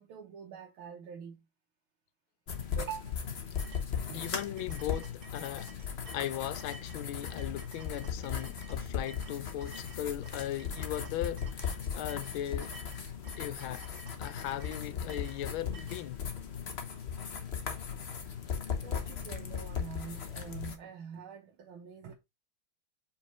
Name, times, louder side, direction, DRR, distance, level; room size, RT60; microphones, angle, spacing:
voice 1, 0.0-1.4 2.5-3.3 4.1-4.3 18.8-22.1, right 7 dB, 75° right, 1.9 m, -45 dB
sound 1, 2.5-20.7, left 7 dB, 50° left, 0.7 m, -38 dB
sound 2, 3.6-16.1, right 3 dB, 55° right, 2.1 m, -53 dB
voice 2, 4.1-5.7 6.1-12.7 13.4-13.8 14.2-16.2, left 12 dB, 75° left, 1.3 m, -38 dB
5.2 x 4.3 x 4.2 m
omnidirectional pair, 2.3 m